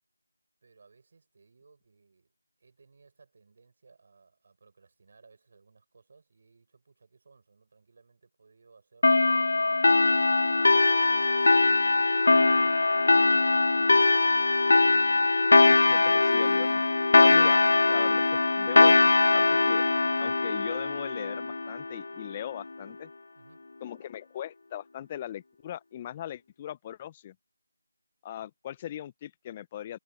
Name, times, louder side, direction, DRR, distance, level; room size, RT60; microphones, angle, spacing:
voice 1, 0.6-2.3 2.6-11.4 11.9-14.3 23.4-23.7, right 4 dB, 35° right, 7.3 m, -61 dB
sound 1, 9.0-22.1, left 3 dB, 50° left, 0.4 m, -22 dB
sound 2, 15.4-15.9 16.2-16.9 17.3-17.4 18.0-18.1 18.9-19.3, left 1 dB, 80° left, 1.0 m, -45 dB
voice 2, 15.6-16.7 17.2-17.6 17.9-19.8 20.2-23.1 23.8-27.3 28.2-30.0, left 11 dB, 15° left, 0.9 m, -39 dB
figure-of-eight pair, 165°, 0 cm